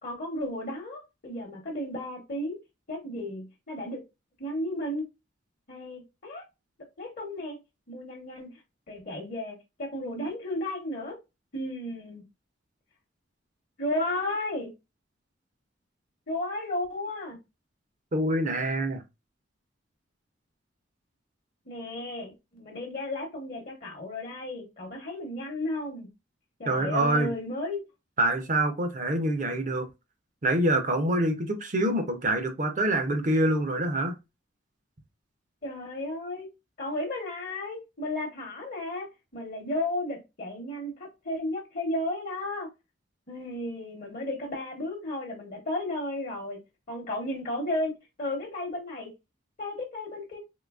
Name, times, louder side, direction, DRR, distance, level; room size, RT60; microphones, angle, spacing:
voice 1, 0.0-2.6 2.9-4.0 4.4-5.1 5.7-6.4 7.0-7.6 7.9-8.6 8.9-11.2 11.5-12.2 13.8-14.7 16.3-17.4 21.7-26.1 26.6-27.8 35.6-36.5 36.8-42.7 43.3-46.6 46.9-47.9 48.2-49.1 49.6-50.4, left 1 dB, 50° left, 0.9 m, -33 dB
voice 2, 18.1-19.0 26.7-27.3 28.2-29.9 30.4-34.1, right 1 dB, 40° right, 0.6 m, -26 dB
3.8 x 2.8 x 2.3 m
head